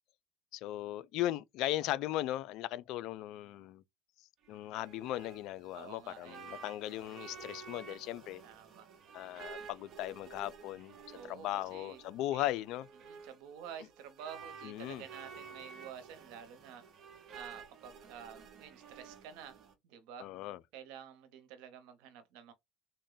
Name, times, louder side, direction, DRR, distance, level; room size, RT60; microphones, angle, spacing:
voice 1, 0.5-3.8 4.5-8.4 9.1-11.0 11.3-12.9 14.6-15.0 20.2-20.6, left 14 dB, 65° left, 0.3 m, -37 dB
sound 1, 4.4-19.7, right 6 dB, 45° right, 0.8 m, -52 dB
voice 2, 5.7-6.4 8.4-8.9 11.1-12.0 12.3-12.5 13.0-16.8 17.3-19.6 19.8-20.3 20.7-22.5, right 8 dB, 75° right, 0.8 m, -50 dB
3.6 x 2.2 x 3.9 m
cardioid pair, 125°, 0 cm